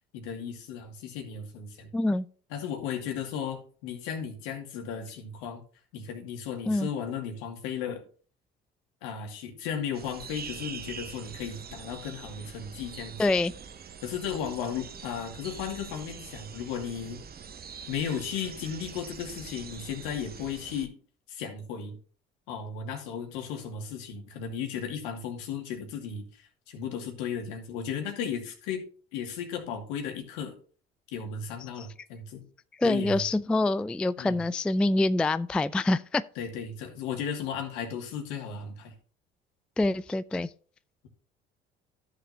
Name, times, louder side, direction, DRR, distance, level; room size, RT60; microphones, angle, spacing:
voice 1, 0.1-1.9 2.5-5.6 5.9-8.0 9.0-13.4 14.0-17.2 17.9-20.9 21.3-22.0 22.5-28.8 29.1-30.5 31.1-32.4 32.8-33.2 34.2-34.4 36.4-38.9, left 7 dB, 70° left, 2.3 m, -35 dB
voice 2, 1.9-2.3 6.7-6.9 13.2-13.5 31.8-31.9 32.8-36.2 39.8-40.5, left 2 dB, 5° left, 0.3 m, -26 dB
sound 1, 9.9-20.9, right 6 dB, 30° right, 0.9 m, -44 dB
13.5 x 6.6 x 2.8 m
hypercardioid pair, 55°, 30 cm